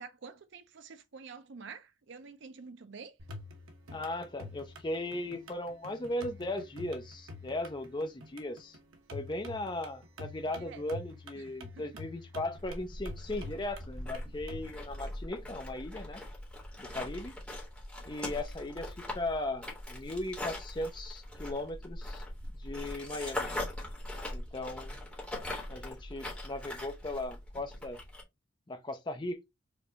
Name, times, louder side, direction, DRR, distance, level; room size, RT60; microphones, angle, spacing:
voice 1, 0.0-3.2 10.6-10.8 11.3-11.9, right 5 dB, 60° right, 0.5 m, -48 dB
sound 1, 3.2-14.7, left 2 dB, 90° right, 1.0 m, -48 dB
voice 2, 3.9-8.8 9.1-16.2 16.8-17.3 18.0-22.2 22.6-23.5 24.3-25.0 25.7-28.0 28.7-29.4, left 1 dB, 20° left, 0.5 m, -37 dB
sound 2, 12.6-28.2, left 1 dB, 5° left, 1.2 m, -41 dB
5.0 x 2.3 x 2.8 m
head